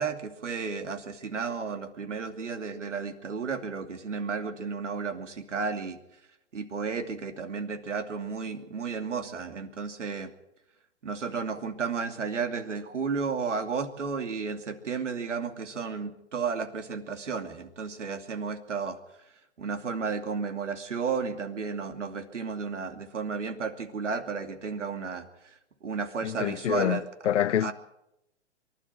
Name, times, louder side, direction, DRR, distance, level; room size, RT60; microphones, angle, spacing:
voice 1, 0.0-6.0 6.5-10.3 11.0-19.0 19.6-25.3 25.8-27.0 27.6-27.7, right 5 dB, 85° right, 2.8 m, -33 dB
voice 2, 26.2-27.7, left 10 dB, 80° left, 0.8 m, -27 dB
24.0 x 12.0 x 9.2 m
hypercardioid pair, 145°, 35 cm